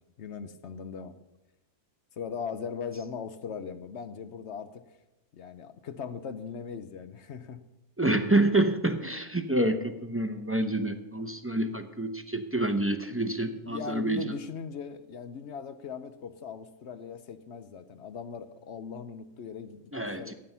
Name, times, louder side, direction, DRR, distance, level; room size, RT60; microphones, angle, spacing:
voice 1, 0.2-1.1 2.2-4.8 5.3-7.7 13.6-20.3, left 6 dB, 60° left, 11 dB, 1.0 m, -39 dB
voice 2, 8.0-14.4 19.9-20.3, right 2 dB, 15° right, 8 dB, 0.6 m, -28 dB
15.0 x 9.2 x 5.5 m, 0.99 s
omnidirectional pair, 1.4 m